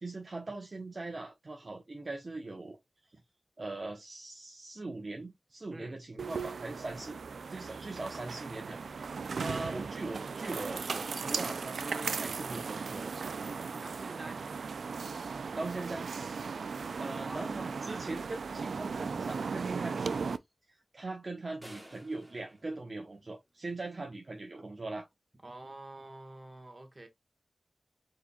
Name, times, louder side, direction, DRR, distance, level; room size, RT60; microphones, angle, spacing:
voice 1, 0.0-2.8 3.1-3.2 3.6-7.2 7.5-13.1 15.6-16.1 17.0-20.2 20.7-25.1, right 2 dB, 45° right, 1.0 m, -41 dB
sound 1, 6.2-20.4, right 5 dB, 85° right, 0.3 m, -37 dB
voice 2, 13.5-14.4 17.2-17.5 25.4-27.1, right 2 dB, 25° right, 1.5 m, -48 dB
sound 2, 21.6-23.8, right 1 dB, 10° right, 2.1 m, -54 dB
4.9 x 4.2 x 2.3 m
wide cardioid pair, 85°, 0 cm